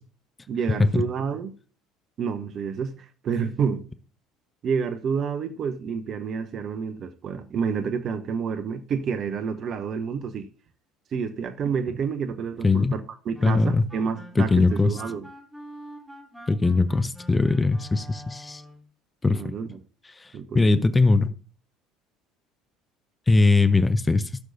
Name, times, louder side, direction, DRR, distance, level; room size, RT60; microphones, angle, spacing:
voice 1, 0.5-1.5 2.2-3.9 4.6-10.5 11.1-15.3 19.3-19.8 20.3-20.8, right 6 dB, 45° right, 0.9 m, -29 dB
sound 1, 13.3-18.9, equal, 5° right, 2.8 m, -45 dB
voice 2, 13.4-13.8 14.4-14.9 16.5-18.6 19.2-19.4 20.5-21.3 23.3-24.2, left 3 dB, 15° left, 0.6 m, -20 dB
15.0 x 6.4 x 2.7 m
figure-of-eight pair, 60°, 0 cm